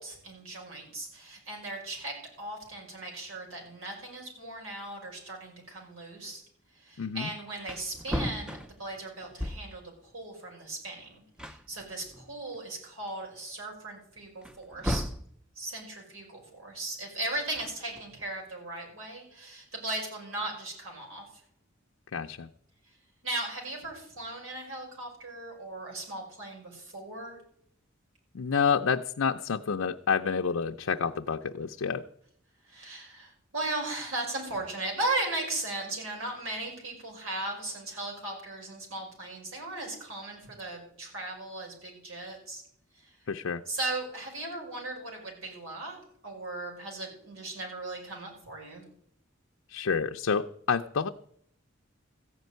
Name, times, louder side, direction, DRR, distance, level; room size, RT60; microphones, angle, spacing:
voice 1, 0.0-6.4 6.7-15.0 15.6-21.4 22.9-23.0 23.2-27.4 32.7-42.6 42.9-43.2 43.7-46.0 46.2-48.8, right 2 dB, 90° right, 0 dB, 5.4 m, -37 dB
voice 2, 7.0-7.3 22.1-22.5 28.3-32.0 43.3-43.6 49.7-51.1, left 6 dB, 85° left, 4 dB, 0.5 m, -29 dB
Wood, 7.6-9.9 11.0-11.1 11.4-12.6 13.1-13.2 14.4-15.3 17.4-18.3, equal, 5° right, 0.5 m, -36 dB
14.5 x 5.3 x 9.2 m, 0.68 s
head